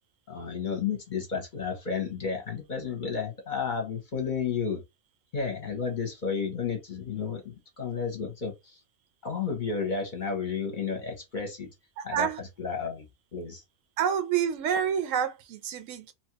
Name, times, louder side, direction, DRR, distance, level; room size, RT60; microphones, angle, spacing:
voice 1, 0.3-4.8 5.3-8.8 9.2-11.7 12.0-13.1 13.3-13.6, left 6 dB, 45° left, 0.8 m, -32 dB
voice 2, 12.0-12.4 14.0-16.1, right 8 dB, 80° right, 0.9 m, -28 dB
2.8 x 2.4 x 2.9 m
omnidirectional pair, 1.3 m